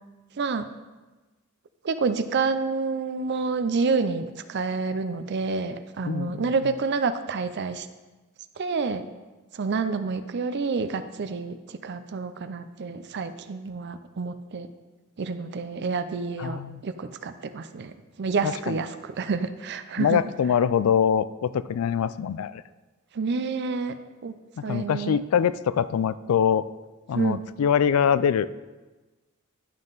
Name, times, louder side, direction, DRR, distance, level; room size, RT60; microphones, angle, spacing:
voice 1, 0.4-0.7 1.8-7.9 8.6-9.0 9.5-14.7 15.2-20.2 23.1-24.0 24.2-24.3 24.6-25.2 27.1-27.4, right 4 dB, 55° right, 11 dB, 0.5 m, -28 dB
voice 2, 6.0-6.5 16.4-16.8 18.4-18.8 20.0-22.6 24.6-26.7 27.1-28.5, left 8 dB, 85° left, 16 dB, 0.3 m, -24 dB
11.0 x 5.5 x 3.9 m, 1.2 s
head